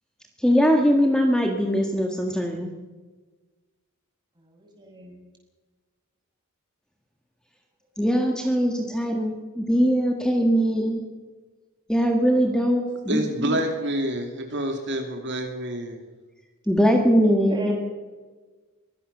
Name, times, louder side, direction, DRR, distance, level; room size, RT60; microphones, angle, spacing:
voice 1, 0.4-2.7 8.0-11.0 11.9-13.2 16.7-17.7, equal, 5° left, 2 dB, 1.8 m, -21 dB
voice 2, 4.5-5.2 17.5-17.7, right 2 dB, 20° right, 1 dB, 6.3 m, -37 dB
voice 3, 13.1-16.0, right 1 dB, 60° right, 3 dB, 2.6 m, -28 dB
23.5 x 17.0 x 6.8 m, 1.3 s
head